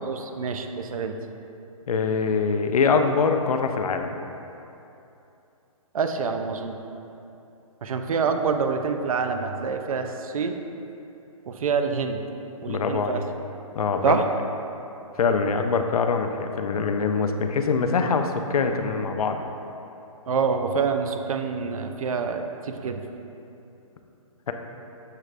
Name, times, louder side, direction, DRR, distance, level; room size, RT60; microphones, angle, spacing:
voice 1, 0.0-1.2 5.9-6.8 7.8-10.6 11.5-12.2 12.6-13.2 14.0-14.2 20.3-23.0, right 5 dB, 70° right, 6 dB, 0.4 m, -26 dB
voice 2, 1.9-4.2 12.7-13.3 13.7-14.2 15.2-19.5 24.5-24.6, left 5 dB, 90° left, 6 dB, 0.4 m, -24 dB
6.4 x 2.4 x 3.2 m, 2.8 s
hypercardioid pair, 165°, 18 cm